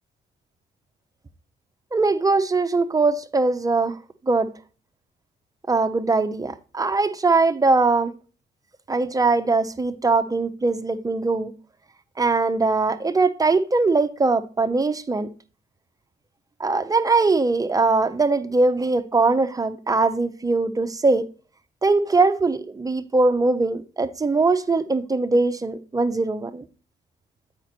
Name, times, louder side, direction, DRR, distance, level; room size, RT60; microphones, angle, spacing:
voice 1, 1.9-4.0 4.2-4.5 5.7-8.1 8.9-11.5 12.2-15.3 16.6-21.3 21.8-26.7, right 3 dB, 15° right, 0.6 m, -21 dB
7.9 x 5.1 x 4.3 m
cardioid pair, 90°, 20 cm